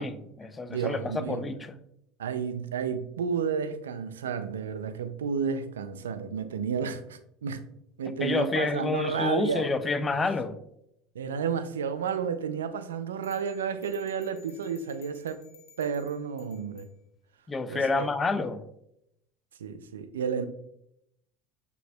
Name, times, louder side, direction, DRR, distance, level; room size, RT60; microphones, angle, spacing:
voice 1, 0.0-1.7 8.2-10.6 17.5-18.6, left 3 dB, 25° left, 0.4 m, -29 dB
voice 2, 0.7-1.5 2.2-7.7 8.0-9.7 11.2-15.4 15.8-16.9 17.7-18.1 19.6-20.5, right 6 dB, 85° right, 0.3 m, -31 dB
sound 1, 13.2-16.9, left 6 dB, 65° left, 0.8 m, -56 dB
6.3 x 2.8 x 2.2 m
hypercardioid pair, 80°, 0 cm